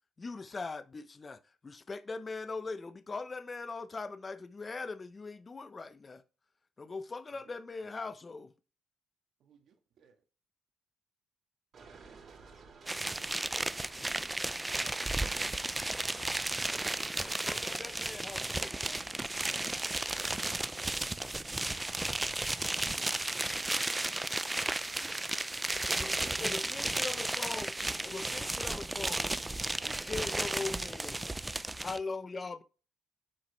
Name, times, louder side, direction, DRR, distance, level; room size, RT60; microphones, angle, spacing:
voice 1, 0.2-6.2 6.8-8.5 17.2-19.0 25.9-27.7 28.0-29.3 29.8-31.2 31.8-32.6, left 3 dB, 30° left, 0.7 m, -41 dB
voice 2, 9.4-10.2 11.9-13.3, right 6 dB, 70° right, 1.6 m, -66 dB
sound 1, 11.7-17.1, right 5 dB, 55° right, 3.0 m, -57 dB
sound 2, 12.9-32.0, right 2 dB, 15° right, 0.4 m, -34 dB
voice 3, 23.7-27.3, left 4 dB, 65° left, 2.9 m, -63 dB
7.4 x 4.9 x 3.3 m
cardioid pair, 90°, 0 cm